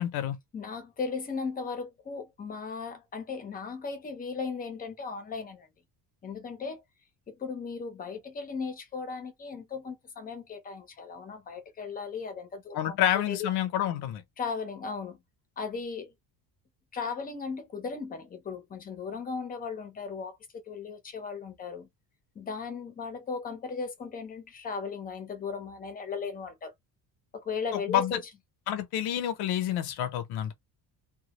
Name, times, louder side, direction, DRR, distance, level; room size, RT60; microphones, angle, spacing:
voice 1, 0.0-0.4 12.7-14.2 27.7-28.2 28.7-30.5, left 11 dB, 70° left, 0.6 m, -28 dB
voice 2, 0.5-5.7 6.2-6.8 7.3-13.0 13.3-13.5 14.4-15.2 15.6-16.1 16.9-21.9 22.4-26.7 27.3-28.2, left 5 dB, 20° left, 0.6 m, -36 dB
2.2 x 2.0 x 2.8 m
cardioid pair, 155°, 40 cm